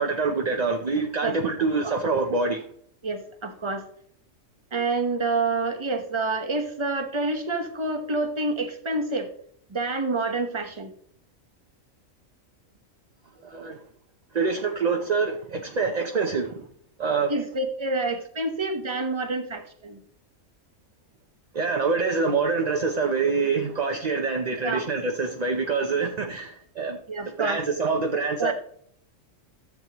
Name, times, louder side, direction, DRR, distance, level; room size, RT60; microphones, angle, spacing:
voice 1, 0.0-2.6 13.4-13.8 14.3-16.7 17.0-17.3 21.5-27.0 27.4-28.5, right 4 dB, 40° right, 3 dB, 0.6 m, -25 dB
voice 2, 3.0-3.8 4.7-9.3 9.7-10.9 17.3-20.0 24.6-24.9 27.1-27.6 28.4-28.5, right 3 dB, 25° right, 6 dB, 1.0 m, -28 dB
14.0 x 7.5 x 3.0 m, 0.64 s
omnidirectional pair, 1.4 m